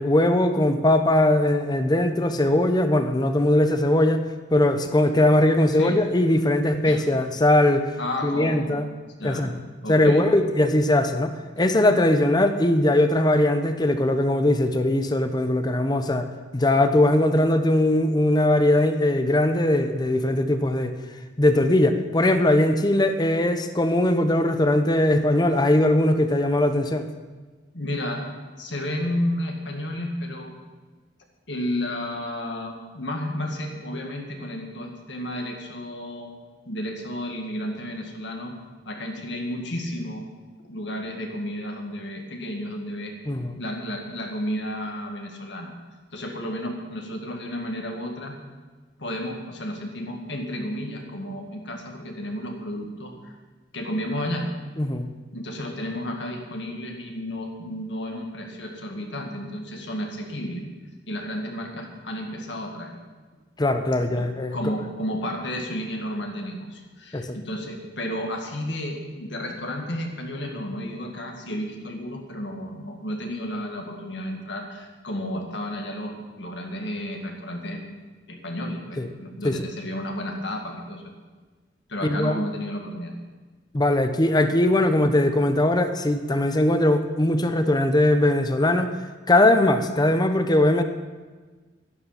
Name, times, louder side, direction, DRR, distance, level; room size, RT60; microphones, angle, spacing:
voice 1, 0.0-7.8 8.2-8.9 9.2-9.5 9.9-16.3 16.5-20.9 21.4-27.1 43.3-43.5 54.8-55.1 63.6-64.6 67.1-67.4 79.0-79.1 79.4-79.6 82.0-82.4 83.7-88.9 89.3-90.8, left 1 dB, 20° left, 8 dB, 0.8 m, -20 dB
voice 2, 6.5-7.0 8.0-8.8 9.2-9.5 9.8-10.2 27.7-28.3 28.6-30.5 31.5-36.3 36.7-38.5 38.9-40.3 40.6-43.1 43.6-45.7 46.1-48.4 49.0-53.3 53.7-54.5 55.3-60.6 61.1-62.9 64.2-64.3 64.5-77.8 78.3-81.0 81.9-83.1, left 1 dB, 70° left, 2 dB, 2.0 m, -32 dB
11.0 x 10.5 x 5.8 m, 1.3 s
head